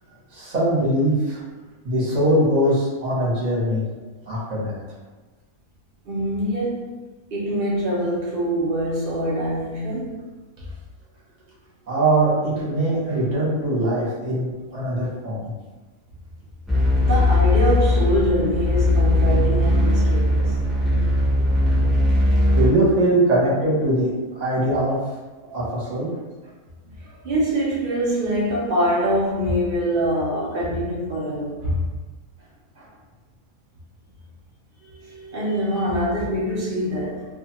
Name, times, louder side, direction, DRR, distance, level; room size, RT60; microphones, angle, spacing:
voice 1, 0.3-1.4 1.8-3.8 4.3-4.7 11.9-15.5 22.6-24.1 24.3-25.0 25.5-26.1 35.1-35.4, right 1 dB, 35° right, -7 dB, 0.8 m, -21 dB
voice 2, 6.1-6.9 7.3-10.2 16.9-20.5 26.8-31.8 35.3-37.3, equal, 80° right, -5 dB, 0.4 m, -24 dB
sound 1, 16.7-22.7, left 1 dB, ahead, 0.3 m, -19 dB
2.4 x 2.3 x 2.8 m, 1.2 s
omnidirectional pair, 1.6 m